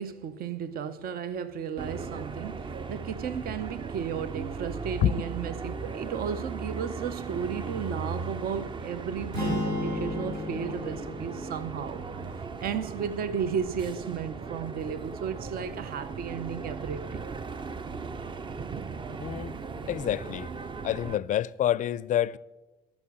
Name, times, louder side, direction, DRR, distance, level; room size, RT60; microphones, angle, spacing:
voice 1, 0.0-12.1 12.6-17.2, right 7 dB, 60° right, 0.8 m, -34 dB
sound 1, 1.8-21.2, right 4 dB, 30° right, 0.6 m, -37 dB
sound 2, 9.3-13.5, left 2 dB, 85° right, 4.7 m, -35 dB
voice 2, 19.1-19.6 19.9-20.5 20.8-22.4, left 11 dB, 50° left, 0.4 m, -27 dB
14.0 x 6.2 x 8.8 m
cardioid pair, 110°, 17 cm